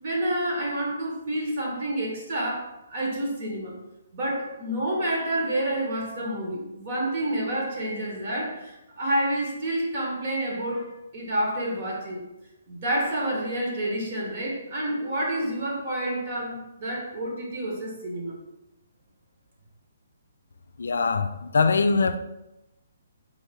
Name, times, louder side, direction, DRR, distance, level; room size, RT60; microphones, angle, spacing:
voice 1, 0.0-3.7 4.1-12.2 12.7-18.3, right 1 dB, 30° right, 0.9 m, -29 dB
voice 2, 20.8-22.2, left 4 dB, 80° left, 0.4 m, -22 dB
4.2 x 3.1 x 3.4 m
hypercardioid pair, 175°, 0 cm